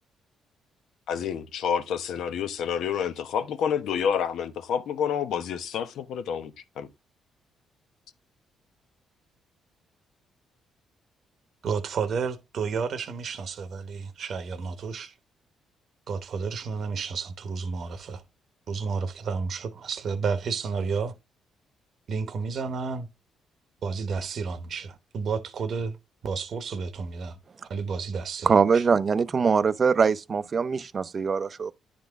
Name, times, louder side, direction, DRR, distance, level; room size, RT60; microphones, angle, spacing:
voice 1, 1.1-6.9, left 7 dB, 80° left, 0.9 m, -29 dB
voice 2, 11.6-15.1 16.1-18.2 18.7-21.1 22.1-23.1 23.8-26.0 26.2-27.4 27.7-28.9, right 5 dB, 60° right, 0.9 m, -31 dB
voice 3, 28.4-31.7, right 5 dB, 40° right, 0.5 m, -22 dB
10.0 x 3.8 x 3.5 m
cardioid pair, 90°, 0 cm